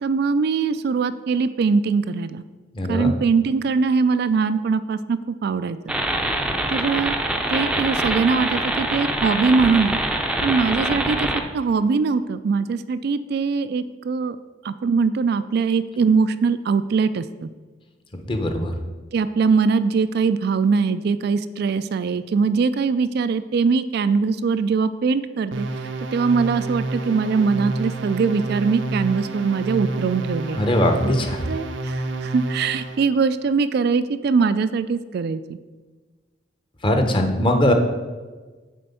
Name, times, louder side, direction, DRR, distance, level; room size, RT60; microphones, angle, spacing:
voice 1, 0.0-2.4 2.9-5.8 6.7-7.2 7.5-10.0 10.4-11.3 11.5-14.4 14.6-17.5 19.1-25.7 26.1-30.6 31.5-35.6, right 5 dB, 55° right, 12 dB, 0.3 m, -22 dB
voice 2, 2.7-3.1 18.1-18.7 30.6-31.4 36.8-37.7, left 1 dB, 25° left, 5 dB, 0.8 m, -20 dB
sound 1, 5.9-11.4, right 1 dB, 5° right, 0.5 m, -24 dB
sound 2, 25.5-33.1, right 2 dB, 85° right, 0.8 m, -29 dB
7.6 x 4.4 x 6.9 m, 1.3 s
head